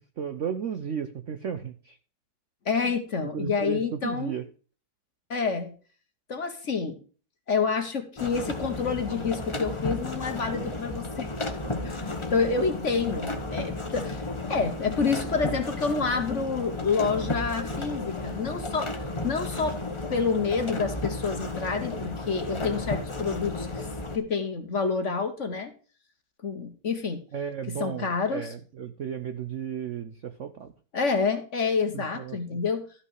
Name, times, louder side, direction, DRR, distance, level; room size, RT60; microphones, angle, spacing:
voice 1, 0.2-2.0 2.8-2.9 3.3-4.5 27.3-30.7 31.9-32.6, right 8 dB, 60° right, 10 dB, 0.7 m, -34 dB
voice 2, 2.6-4.4 5.3-5.7 6.3-7.0 7.5-11.3 11.8-19.0 19.2-19.8 20.1-23.9 24.1-25.7 26.4-27.2 27.8-28.5 30.9-32.9, left 5 dB, 45° left, 7 dB, 1.2 m, -28 dB
sound 1, 8.2-24.2, left 2 dB, 20° left, 1.0 m, -33 dB
13.0 x 5.8 x 4.7 m, 0.39 s
omnidirectional pair, 2.1 m